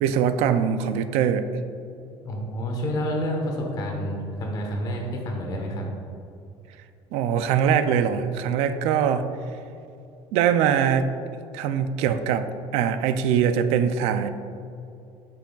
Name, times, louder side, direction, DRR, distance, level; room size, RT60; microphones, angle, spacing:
voice 1, 0.0-1.5 7.1-9.3 10.3-11.1 11.5-14.3, right 8 dB, 85° right, 10 dB, 0.4 m, -22 dB
voice 2, 2.2-5.8, equal, 40° left, 1 dB, 1.1 m, -29 dB
8.5 x 5.8 x 2.3 m, 2.6 s
cardioid pair, 155°, 10 cm